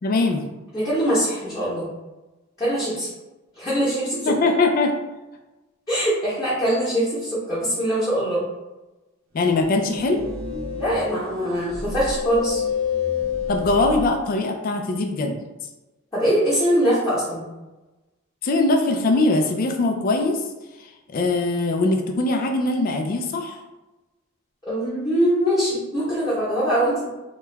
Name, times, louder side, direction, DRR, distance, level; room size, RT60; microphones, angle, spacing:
voice 1, 0.0-0.5 4.3-4.9 9.3-10.2 13.5-15.4 18.4-20.4 20.8-23.6, left 2 dB, 45° left, 4 dB, 0.3 m, -21 dB
voice 2, 0.7-1.9 2.6-3.1 3.6-4.3 5.9-8.4 10.8-12.6 16.1-17.5 24.6-27.1, equal, 15° left, -12 dB, 0.9 m, -22 dB
sound 1, 9.4-14.1, left 6 dB, 85° right, 0.7 m, -29 dB
2.9 x 2.2 x 3.2 m, 1.1 s
head